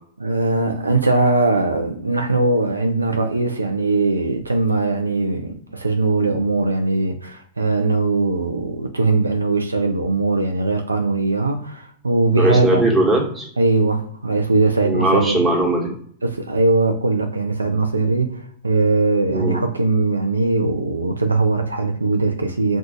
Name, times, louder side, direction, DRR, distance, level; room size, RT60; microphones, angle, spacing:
voice 1, 0.2-12.8 13.6-15.4 16.2-22.8, right 3 dB, 90° right, 0.4 m, -20 dB
voice 2, 12.4-13.5 14.8-15.9 19.3-19.6, right 1 dB, 20° right, 1.0 m, -19 dB
2.4 x 2.3 x 3.8 m
figure-of-eight pair, 100°, 0 cm